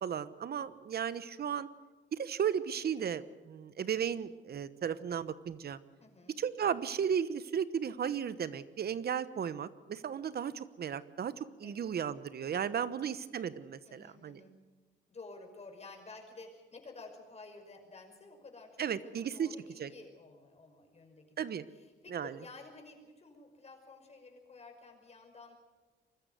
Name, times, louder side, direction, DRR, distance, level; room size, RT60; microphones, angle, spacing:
voice 1, 0.0-1.7 2.1-5.8 6.4-14.4 18.8-19.5 19.8-19.9 21.4-21.7 22.1-22.4, right 8 dB, 50° right, 15 dB, 1.1 m, -35 dB
voice 2, 6.0-6.3 11.6-11.7 12.7-13.0 13.8-14.6 15.1-25.5, left 3 dB, 35° left, 2 dB, 5.6 m, -52 dB
24.0 x 14.0 x 9.5 m, 1.3 s
cardioid pair, 90°, 20 cm